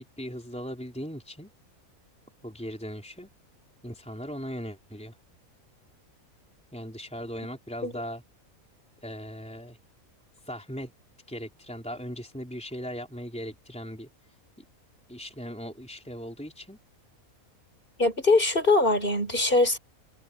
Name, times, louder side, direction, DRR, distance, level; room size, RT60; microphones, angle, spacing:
voice 1, 0.0-1.5 2.4-3.3 3.8-5.2 6.7-8.2 9.0-9.8 10.4-10.9 11.3-14.1 14.6-14.7 15.1-16.8, equal, 5° left, 4.1 m, -38 dB
voice 2, 18.0-19.8, left 2 dB, 35° left, 4.1 m, -22 dB
omnidirectional pair, 1.5 m